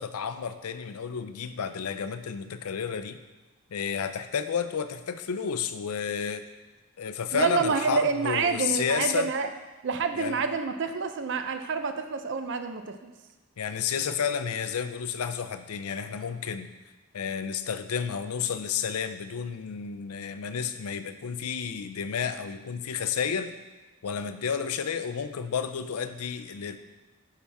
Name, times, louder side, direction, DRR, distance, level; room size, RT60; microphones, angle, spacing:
voice 1, 0.0-3.2 3.7-6.4 7.0-9.3 10.2-10.4 13.6-16.7 17.1-23.5 24.0-26.8, left 7 dB, 90° left, 10 dB, 0.5 m, -31 dB
voice 2, 7.3-9.5 9.8-13.1, right 5 dB, 55° right, 8 dB, 0.6 m, -28 dB
9.8 x 5.6 x 3.5 m, 1.2 s
head